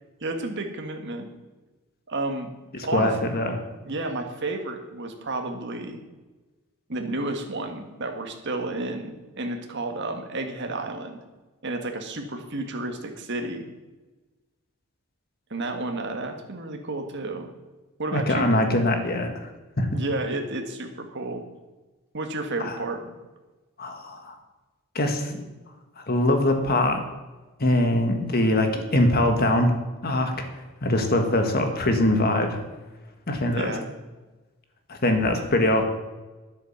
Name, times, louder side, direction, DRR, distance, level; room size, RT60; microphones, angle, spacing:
voice 1, 0.2-1.3 2.1-2.5 2.8-3.3 3.8-6.0 6.9-11.2 11.6-13.6 15.5-17.5 18.0-18.6 19.9-21.4 22.1-23.1 33.5-33.8, right 2 dB, 55° right, 4 dB, 1.7 m, -31 dB
voice 2, 2.7-3.6 18.1-19.3 19.8-19.9 22.6-22.8 23.8-24.3 24.9-25.4 26.0-27.0 27.6-29.7 30.0-30.3 30.8-32.6 33.3-33.7 34.9-35.8, left 1 dB, 45° left, 5 dB, 1.5 m, -22 dB
11.0 x 8.4 x 7.2 m, 1.2 s
head